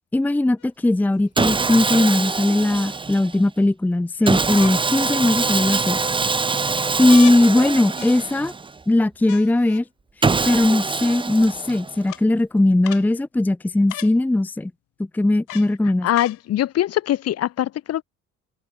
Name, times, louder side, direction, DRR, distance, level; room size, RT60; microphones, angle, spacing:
voice 1, 0.1-6.0 7.0-8.5 8.9-9.8 10.2-14.7 15.1-16.1, left 2 dB, 5° left, 0.8 m, -19 dB
sound 1, 0.6-0.7 2.3-3.0 4.5-4.8 5.4-5.9 7.1-7.4 8.0-8.5 9.3-9.8 10.8-10.9 12.1-12.2 12.8-13.1 13.9-14.2 15.5-15.7 16.1-16.4 17.3-17.4, left 17 dB, 90° left, 4.3 m, -38 dB
Sawing, 1.4-3.4 4.3-8.8 10.2-12.0, right 4 dB, 15° right, 2.0 m, -24 dB
voice 2, 16.0-18.0, left 12 dB, 55° left, 2.3 m, -22 dB
cardioid pair, 170°, 31 cm